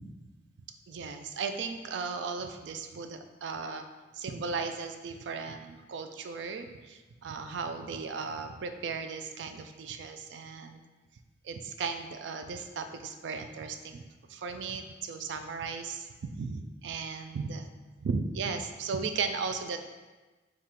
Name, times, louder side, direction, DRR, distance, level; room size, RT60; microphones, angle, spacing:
voice 1, 0.9-3.8 4.1-10.8 11.4-14.0 14.3-17.7 18.0-19.8, right 5 dB, 80° right, 7 dB, 0.3 m, -36 dB
3.7 x 2.4 x 4.2 m, 1.2 s
head